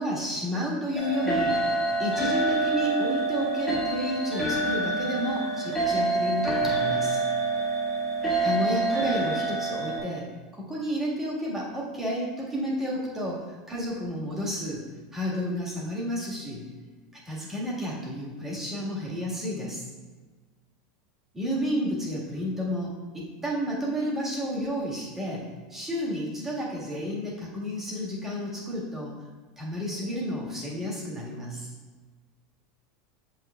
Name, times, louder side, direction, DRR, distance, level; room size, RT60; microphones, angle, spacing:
voice 1, 0.0-1.6 2.0-7.2 8.4-14.8 15.1-16.6 17.2-19.9 21.3-29.1 29.6-31.7, equal, 15° right, -5 dB, 1.6 m, -31 dB
sound 1, 0.9-10.0, right 2 dB, 5° left, 1.5 m, -27 dB
7.3 x 5.8 x 2.3 m, 1.4 s
supercardioid pair, 135°, 2 cm